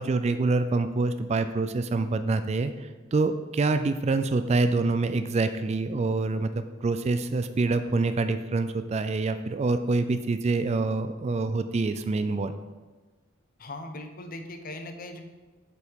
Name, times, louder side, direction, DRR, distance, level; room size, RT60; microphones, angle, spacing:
voice 1, 0.0-12.5, right 3 dB, 30° right, 10 dB, 0.3 m, -26 dB
voice 2, 13.6-15.2, left 2 dB, 45° left, 6 dB, 0.8 m, -39 dB
8.1 x 5.5 x 4.6 m, 1.3 s
head